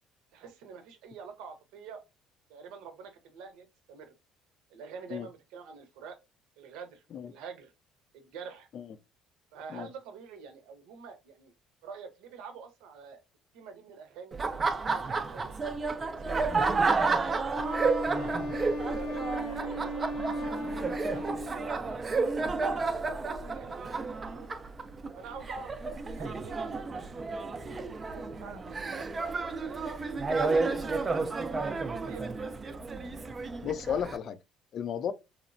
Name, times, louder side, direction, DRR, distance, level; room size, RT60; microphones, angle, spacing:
voice 1, 0.3-2.0 2.5-4.1 4.7-6.2 6.6-7.7 8.1-8.7 9.5-11.5 11.8-13.2 13.5-14.4 14.8-17.6 18.0-20.1 20.5-21.5 21.8-23.0 23.4-24.5 25.2-25.7 26.1-29.9 30.2-31.1 31.5-32.3, right 6 dB, 85° right, 0.7 m, -47 dB
Laughter, 14.3-34.2, right 4 dB, 25° right, 0.3 m, -31 dB
Wind instrument woodwind instrument, 17.5-21.9, equal, 75° left, 0.8 m, -36 dB
voice 2, 33.6-34.4 34.7-35.1, left 8 dB, 50° left, 0.3 m, -33 dB
2.9 x 2.0 x 2.5 m
cardioid pair, 115°, 0 cm